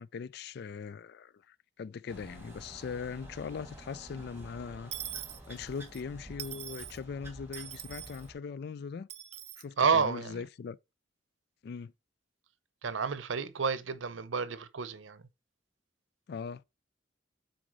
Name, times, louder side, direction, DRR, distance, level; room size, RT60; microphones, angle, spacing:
voice 1, 0.0-4.9 5.5-9.1 9.6-10.8 11.6-11.9 16.3-16.6, left 5 dB, 55° left, 0.3 m, -40 dB
sound 1, 2.1-8.3, right 1 dB, 10° right, 2.1 m, -50 dB
Dishes pots and pans / Coin (dropping), 4.9-6.0 6.4-7.0 7.5-8.3 9.1-9.6, right 11 dB, 35° right, 0.5 m, -42 dB
voice 2, 9.8-10.4 12.8-15.2, right 5 dB, 85° right, 0.7 m, -30 dB
6.1 x 4.3 x 3.9 m
head